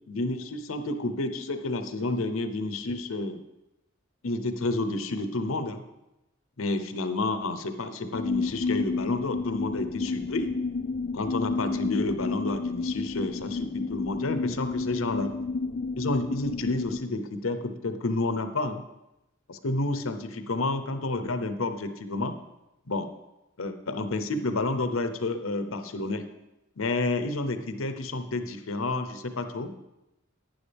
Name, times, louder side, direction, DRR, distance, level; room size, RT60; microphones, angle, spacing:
voice 1, 0.1-3.4 4.2-5.8 6.6-10.5 11.1-15.3 16.0-18.8 19.5-22.4 22.9-23.1 23.6-26.3 26.8-29.8, left 2 dB, 75° left, 9 dB, 0.9 m, -30 dB
sound 1, 8.1-17.0, left 4 dB, 45° left, 0.4 m, -31 dB
11.0 x 9.5 x 3.5 m, 0.94 s
head